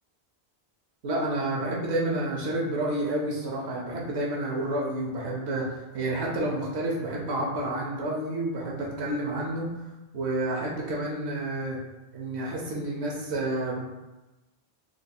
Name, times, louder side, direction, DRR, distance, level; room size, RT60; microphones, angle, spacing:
voice 1, 1.0-5.7 5.9-9.7 10.1-11.8 12.1-13.8, right 1 dB, 85° right, -3 dB, 0.9 m, -29 dB
4.6 x 2.6 x 2.2 m, 1.1 s
omnidirectional pair, 1.1 m